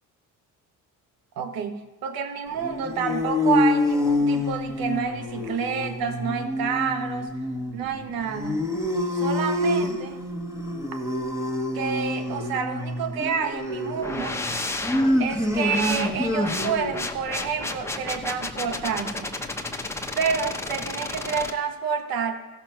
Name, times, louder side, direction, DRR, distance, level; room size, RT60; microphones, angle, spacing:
voice 1, 1.4-7.3 7.7-8.7 9.1-10.2 11.7-14.4 15.2-19.3 20.1-22.4, right 6 dB, 80° right, 7 dB, 1.5 m, -29 dB
sound 1, 2.5-17.0, left 1 dB, 10° right, 1.5 m, -27 dB
sound 2, 14.0-21.5, left 2 dB, 10° left, 0.9 m, -32 dB
15.0 x 6.0 x 5.8 m, 1.3 s
cardioid pair, 105°, 35 cm